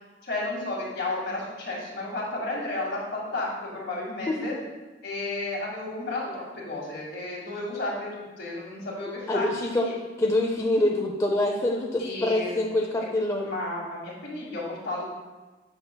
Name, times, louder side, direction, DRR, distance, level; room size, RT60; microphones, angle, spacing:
voice 1, 0.2-4.5 5.0-9.5 9.8-9.9 12.0-12.5 13.4-15.1, left 2 dB, 65° left, -4 dB, 1.9 m, -32 dB
voice 2, 9.3-9.9 10.2-13.5, left 1 dB, 15° left, 0 dB, 0.4 m, -25 dB
7.8 x 5.4 x 2.2 m, 1.2 s
head